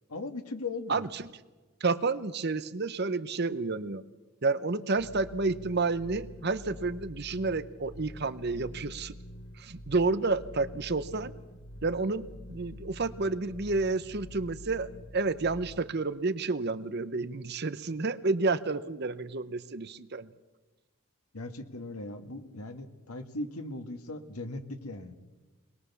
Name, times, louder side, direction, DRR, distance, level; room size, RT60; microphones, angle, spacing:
voice 1, 0.1-1.0 21.3-25.2, left 2 dB, 85° left, 8 dB, 1.8 m, -38 dB
voice 2, 0.9-1.3 1.8-4.0 4.4-9.1 9.6-11.3 11.8-20.3, right 3 dB, 50° right, 14 dB, 0.8 m, -30 dB
sound 1, 5.0-15.8, left 1 dB, 55° left, 1.2 m, -46 dB
21.5 x 21.0 x 7.0 m, 1.2 s
head